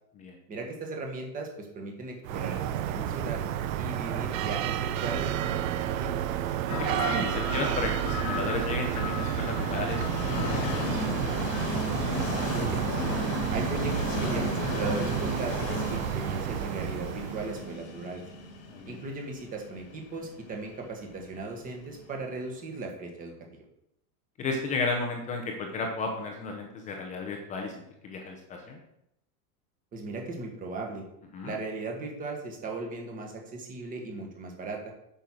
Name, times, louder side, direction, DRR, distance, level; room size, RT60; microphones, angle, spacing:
voice 1, 0.5-3.4 3.8-6.2 12.5-13.2 13.5-18.2 18.8-23.3 29.9-31.0 31.4-34.9, right 3 dB, 15° right, 2 dB, 1.5 m, -37 dB
sound 1, 2.2-17.7, right 10 dB, 55° right, 0.8 m, -31 dB
Train, 6.6-22.4, left 2 dB, 30° left, 1.5 m, -35 dB
sound 2, 6.7-14.2, left 8 dB, 55° left, 1.3 m, -39 dB
voice 2, 7.1-10.5 10.8-10.9 18.7-19.0 24.4-28.8 31.3-31.5, left 3 dB, 15° left, 2 dB, 0.7 m, -33 dB
9.0 x 5.6 x 6.2 m, 0.79 s
supercardioid pair, 170°, 49 cm